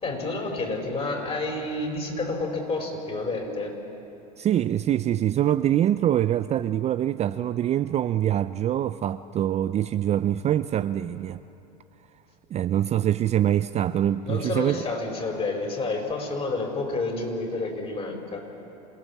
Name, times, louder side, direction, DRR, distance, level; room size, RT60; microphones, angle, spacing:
voice 1, 0.0-3.7 14.2-18.4, left 3 dB, 30° left, 2 dB, 5.0 m, -29 dB
voice 2, 4.4-11.4 12.5-14.8, right 11 dB, 30° right, 12 dB, 0.5 m, -24 dB
27.0 x 16.5 x 7.2 m, 2.9 s
hypercardioid pair, 95°, 21 cm